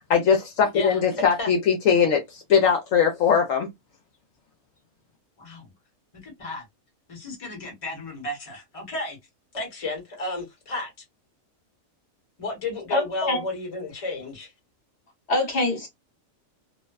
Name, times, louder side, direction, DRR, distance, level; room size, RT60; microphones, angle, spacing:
voice 1, 0.1-3.7, left 7 dB, 70° left, 1.0 m, -20 dB
voice 2, 5.4-5.7 6.2-6.6 7.1-9.2 9.5-10.9 12.4-14.5, left 2 dB, 25° left, 1.0 m, -33 dB
voice 3, 12.9-13.4 15.3-15.9, left 2 dB, 55° left, 1.3 m, -24 dB
2.6 x 2.1 x 2.2 m
omnidirectional pair, 1.5 m